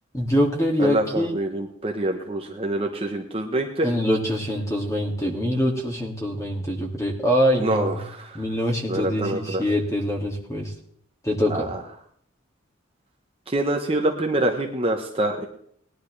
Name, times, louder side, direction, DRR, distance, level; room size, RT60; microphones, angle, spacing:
voice 1, 0.1-1.4 3.8-8.0 8.3-10.7 11.2-11.7, equal, 15° left, 0 dB, 2.4 m, -24 dB
voice 2, 0.8-3.9 7.6-8.4 8.9-9.6 11.5-11.8 13.5-15.5, right 1 dB, 30° right, 2 dB, 1.1 m, -26 dB
19.0 x 11.0 x 3.4 m, 0.65 s
head